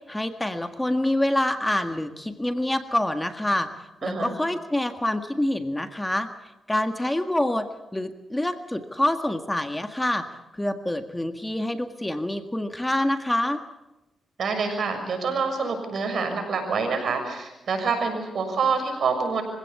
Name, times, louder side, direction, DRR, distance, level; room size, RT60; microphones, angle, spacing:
voice 1, 0.1-3.7 4.0-6.3 6.7-7.7 7.9-10.3 10.6-13.6, left 1 dB, 10° left, 7 dB, 1.7 m, -26 dB
voice 2, 4.0-4.3 14.4-19.4, right 4 dB, 65° right, 6 dB, 6.5 m, -26 dB
24.5 x 16.5 x 8.4 m, 0.97 s
cardioid pair, 65°, 0 cm